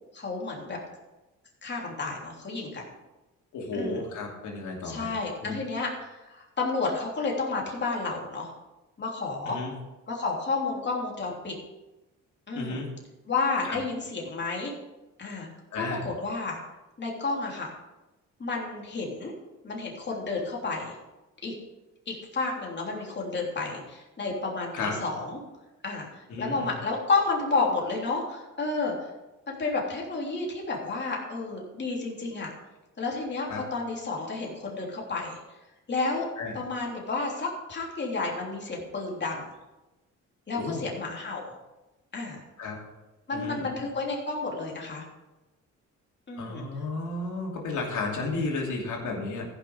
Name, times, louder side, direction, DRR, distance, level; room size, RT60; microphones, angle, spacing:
voice 1, 0.1-0.8 1.6-2.8 3.7-4.0 4.8-8.5 9.0-9.6 10.1-11.5 12.5-12.8 13.3-14.7 15.2-15.5 15.7-16.6 17.0-17.7 18.4-19.3 19.6-20.9 21.4-21.5 22.1-25.4 25.8-29.1 29.5-32.5 33.0-35.4 35.9-36.3 36.5-39.5 40.5-41.5 42.1-42.4 43.3-45.0 46.3-46.7, left 3 dB, 35° left, -2 dB, 3.2 m, -31 dB
voice 2, 3.5-5.1 5.4-5.6 9.5-9.7 12.5-12.9 13.6-13.8 15.7-16.0 24.7-24.9 26.3-26.7 33.5-33.6 36.4-36.5 40.5-40.8 42.6-42.8 43.3-43.7 46.4-49.4, left 3 dB, 80° left, -1 dB, 2.8 m, -33 dB
14.5 x 6.1 x 4.8 m, 1.1 s
cardioid pair, 90°, 30 cm